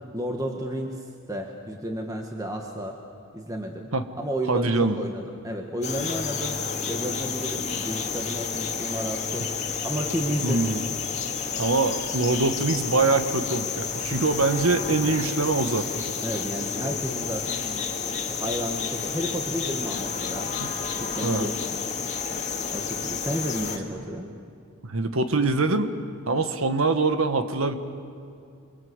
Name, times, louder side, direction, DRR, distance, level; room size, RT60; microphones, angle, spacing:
voice 1, 0.1-3.0 3.3-3.9 4.2-10.7 11.3-11.6 16.2-17.9 18.1-20.5 21.0-21.8 22.7-24.3, equal, 15° right, 2 dB, 1.6 m, -32 dB
voice 2, 4.5-5.0 10.4-10.8 11.6-16.0 20.6-20.7 21.2-21.5 24.8-25.9 26.3-27.7, right 3 dB, 70° right, 9 dB, 1.5 m, -24 dB
sound 1, 5.8-23.8, left 5 dB, 35° left, 2.1 m, -30 dB
27.5 x 23.5 x 8.1 m, 2.4 s
head